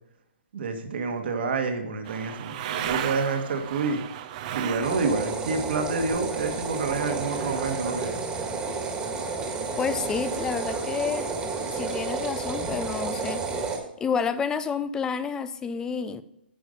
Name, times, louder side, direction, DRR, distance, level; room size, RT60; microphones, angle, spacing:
voice 1, 0.5-4.0 4.5-8.1, right 4 dB, 65° right, 5 dB, 1.6 m, -28 dB
sound 1, 2.0-5.3 5.7-7.0, right 11 dB, 40° right, 0.6 m, -35 dB
sound 2, 4.8-13.8, right 4 dB, 10° right, 1.6 m, -31 dB
voice 2, 9.8-11.3 11.7-13.4 14.0-16.2, left 6 dB, 10° left, 15 dB, 0.4 m, -29 dB
9.2 x 5.2 x 5.1 m, 0.81 s
hypercardioid pair, 150°, 6 cm